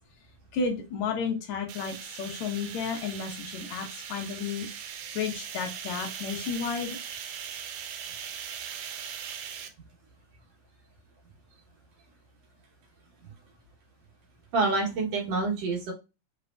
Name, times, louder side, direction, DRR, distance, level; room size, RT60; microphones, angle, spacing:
voice 1, 0.5-4.7 5.2-7.0, left 5 dB, 75° left, 3 dB, 1.9 m, -32 dB
sound 1, 1.7-9.7, right 8 dB, 85° right, 2.2 m, -39 dB
voice 2, 14.5-15.9, right 3 dB, 65° right, 0 dB, 2.0 m, -27 dB
5.1 x 3.4 x 2.2 m, 0.28 s
omnidirectional pair, 3.5 m